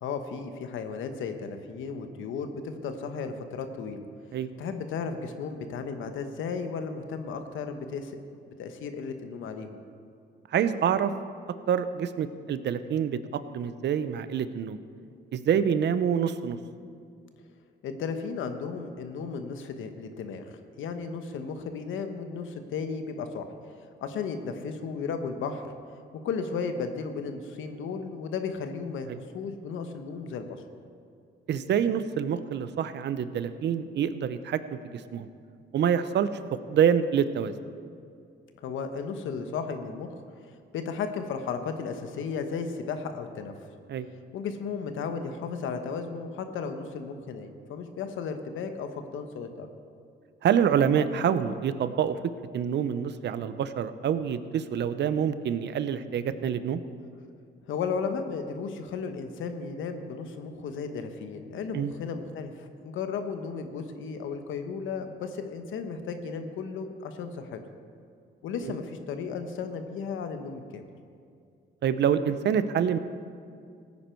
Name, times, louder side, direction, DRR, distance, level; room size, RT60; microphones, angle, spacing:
voice 1, 0.0-4.0 4.6-8.2 8.6-9.8 17.8-23.5 24.0-25.7 26.2-30.5 38.6-40.1 40.7-43.5 44.3-49.7 57.7-67.6 68.4-70.8, left 5 dB, 80° left, 7 dB, 1.1 m, -34 dB
voice 2, 10.5-11.1 11.7-13.2 13.5-14.8 15.3-16.6 29.1-29.2 31.5-34.6 34.9-35.3 35.7-36.3 36.7-37.5 43.9-44.1 50.4-52.2 52.5-56.8 61.7-61.9 68.6-68.7 71.8-73.0, right 8 dB, 60° right, 12 dB, 0.7 m, -26 dB
17.0 x 9.6 x 4.5 m, 2.4 s
cardioid pair, 90°, 20 cm